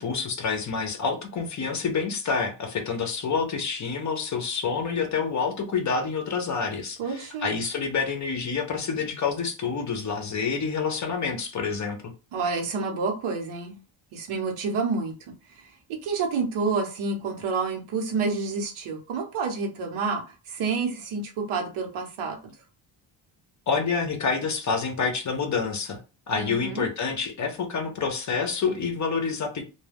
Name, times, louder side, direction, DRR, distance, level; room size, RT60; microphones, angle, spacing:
voice 1, 0.0-12.0 23.7-26.0 26.3-29.6, left 5 dB, 35° left, 0.6 m, -28 dB
voice 2, 7.0-7.5 12.3-13.8 14.1-15.1 15.5-22.4 26.3-26.9, right 4 dB, 80° right, 0.9 m, -29 dB
2.3 x 2.2 x 3.3 m
cardioid pair, 160°, 48 cm